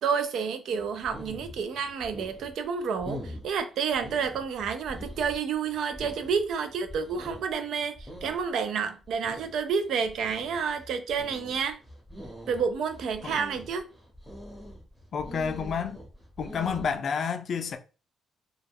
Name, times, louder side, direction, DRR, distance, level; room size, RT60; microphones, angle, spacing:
voice 1, 0.0-11.8 12.5-13.8, right 6 dB, 70° right, 0.4 m, -30 dB
sound 1, 0.8-17.0, equal, 5° right, 0.9 m, -44 dB
voice 2, 15.1-16.0 16.4-17.8, left 6 dB, 55° left, 0.4 m, -30 dB
2.3 x 2.1 x 3.4 m
cardioid pair, 90°, 0 cm